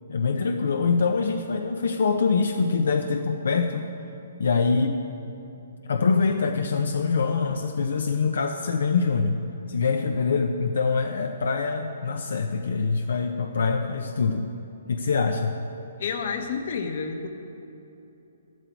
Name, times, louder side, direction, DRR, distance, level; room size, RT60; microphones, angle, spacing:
voice 1, 0.1-3.8 4.4-5.0 5.9-9.4 9.7-14.5 14.9-15.5, left 4 dB, 80° left, 5 dB, 0.8 m, -24 dB
voice 2, 16.0-17.3, left 5 dB, 55° left, 5 dB, 1.3 m, -29 dB
13.5 x 12.5 x 4.6 m, 2.9 s
hypercardioid pair, 165°, 0 cm